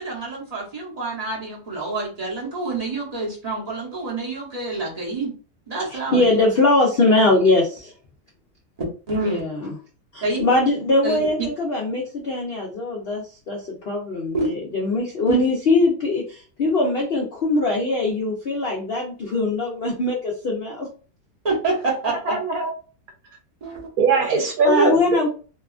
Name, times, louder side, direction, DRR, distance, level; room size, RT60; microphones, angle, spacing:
voice 1, 0.0-5.3 5.7-6.4 9.1-9.4 10.2-10.4 11.0-11.2 14.3-14.5 15.3-15.4 21.4-22.4 23.6-23.9, right 3 dB, 30° right, -4 dB, 0.8 m, -27 dB
voice 2, 5.9-7.9 9.2-9.7 10.1-20.9 24.6-25.3, left 2 dB, 70° left, -1 dB, 0.5 m, -21 dB
voice 3, 22.3-22.7 24.0-25.3, right 4 dB, 70° right, 3 dB, 1.0 m, -21 dB
2.8 x 2.3 x 2.3 m, 0.37 s
omnidirectional pair, 1.7 m